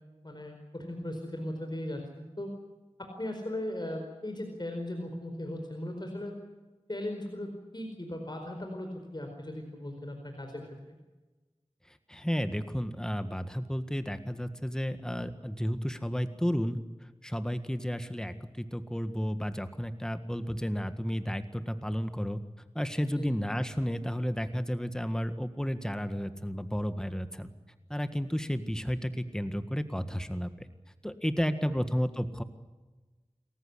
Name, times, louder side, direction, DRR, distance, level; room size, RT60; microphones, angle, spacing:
voice 1, 0.2-2.5 3.0-6.3 6.9-10.8 23.2-23.3 31.7-31.8, left 1 dB, 40° left, 4 dB, 4.6 m, -38 dB
voice 2, 12.1-16.8 17.2-22.4 22.7-27.5 27.9-30.7 31.0-32.4, equal, 5° left, 10 dB, 1.7 m, -32 dB
27.5 x 14.5 x 9.8 m, 1.2 s
wide cardioid pair, 45°, 11 cm